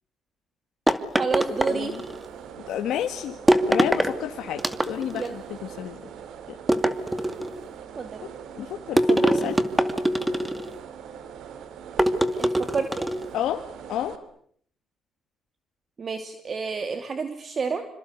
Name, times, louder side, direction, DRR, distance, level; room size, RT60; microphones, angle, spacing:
sound 1, 0.9-2.3 3.5-4.1 4.6-5.3 6.7-7.6 9.0-10.7 12.0-13.3, right 1 dB, 10° right, 2.3 m, -23 dB
voice 1, 1.1-1.9 5.1-5.3 8.0-8.2 12.4-13.1 16.0-17.9, right 5 dB, 45° right, 8 dB, 2.7 m, -29 dB
sound 2, 1.4-14.2, right 8 dB, 80° right, 2.8 m, -42 dB
voice 2, 1.7-2.0 2.7-3.4 3.7-4.6 4.9-6.0 6.5-6.6 8.6-9.6 13.3-13.6 13.9-14.2, left 11 dB, 80° left, 5 dB, 1.8 m, -30 dB
28.0 x 25.5 x 8.3 m, 0.63 s
cardioid pair, 90°, 0 cm